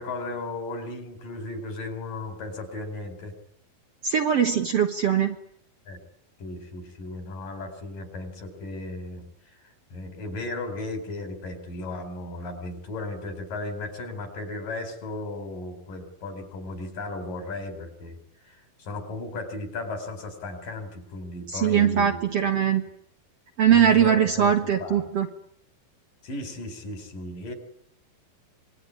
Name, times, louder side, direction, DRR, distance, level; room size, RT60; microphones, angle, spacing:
voice 1, 0.0-3.3 5.9-6.0 6.4-9.2 9.9-18.2 18.4-22.2 23.7-25.0 26.2-27.5, left 2 dB, 65° left, 8 dB, 6.0 m, -35 dB
voice 2, 4.0-5.4 21.5-22.8 23.6-25.3, right 8 dB, 55° right, 5 dB, 1.9 m, -21 dB
26.5 x 21.0 x 9.9 m, 0.72 s
omnidirectional pair, 4.2 m